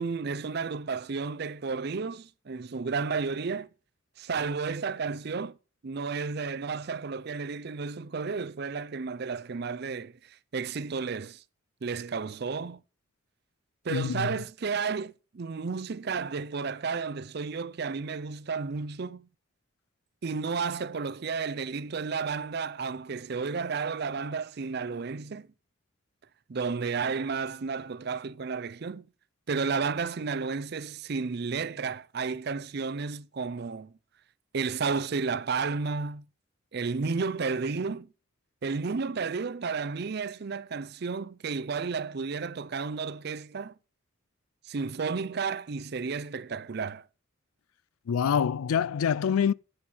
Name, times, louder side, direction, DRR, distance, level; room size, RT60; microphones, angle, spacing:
voice 1, 0.0-3.7 4.2-5.6 5.8-11.4 11.8-12.8 13.8-19.3 20.2-25.5 26.5-29.1 29.5-33.9 34.5-36.3 36.7-38.1 38.6-43.7 44.7-47.0, right 5 dB, 50° right, 0.5 m, -32 dB
voice 2, 13.9-14.3 48.1-49.5, left 7 dB, 90° left, 0.4 m, -25 dB
7.8 x 7.8 x 5.5 m
head